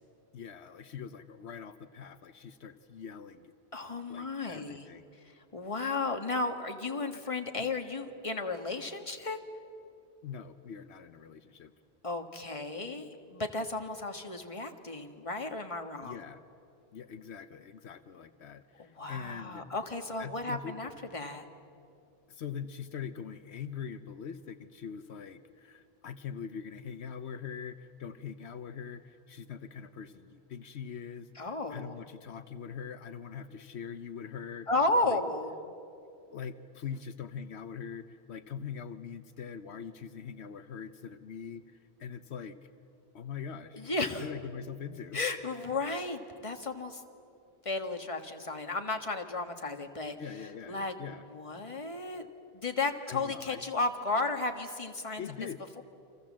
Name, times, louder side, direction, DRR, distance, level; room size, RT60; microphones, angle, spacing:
voice 1, 0.3-3.5 4.1-5.1 7.1-7.2 7.6-7.7 10.2-11.7 16.0-16.4 16.9-19.7 20.2-20.7 22.3-34.7 35.0-35.2 36.3-42.7 43.1-43.9 44.1-45.2 50.2-51.2 53.1-53.6 55.2-55.6, left 7 dB, 80° left, 10 dB, 1.1 m, -43 dB
voice 2, 3.7-4.9 5.2-9.4 12.0-16.2 18.8-21.4 31.4-32.0 34.7-35.5 43.7-44.3 45.1-47.0 47.7-50.2 50.7-51.0 51.3-52.3 52.5-55.2, left 3 dB, 30° left, 5 dB, 1.7 m, -34 dB
29.0 x 26.0 x 7.5 m, 2.5 s
omnidirectional pair, 1.1 m